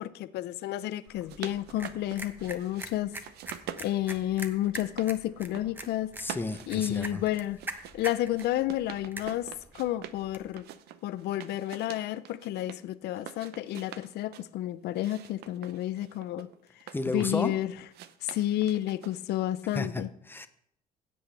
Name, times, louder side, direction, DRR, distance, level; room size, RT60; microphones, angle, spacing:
voice 1, 0.0-3.1 3.8-6.1 6.7-7.6 7.9-9.5 9.7-10.7 11.0-16.5 17.1-17.7 18.2-20.1, left 13 dB, 75° left, 0.6 m, -31 dB
sound 1, 1.0-2.9 3.2-5.1 5.4-5.9 6.2-10.2 10.6-12.8 13.2-14.5 14.9-17.5 17.9-19.4, right 10 dB, 75° right, 0.7 m, -45 dB
sound 2, 1.1-10.6, right 2 dB, 10° right, 1.1 m, -44 dB
voice 2, 6.2-7.2 16.9-17.5 19.7-20.5, left 2 dB, 10° left, 0.8 m, -32 dB
16.0 x 7.9 x 3.4 m
cardioid pair, 110°, 17 cm